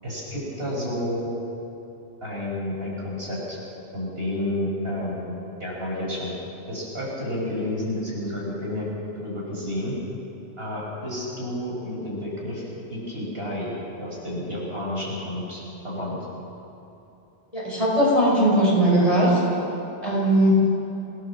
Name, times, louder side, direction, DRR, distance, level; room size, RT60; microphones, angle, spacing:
voice 1, 0.0-1.3 2.2-3.6 3.9-6.3 6.7-8.9 9.2-10.0 10.6-13.7 14.0-16.2, left 1 dB, 55° right, -4 dB, 6.2 m, -30 dB
voice 2, 17.5-19.4 20.0-20.5, right 1 dB, 30° left, -5 dB, 6.2 m, -19 dB
24.0 x 17.5 x 7.4 m, 2.9 s
omnidirectional pair, 1.2 m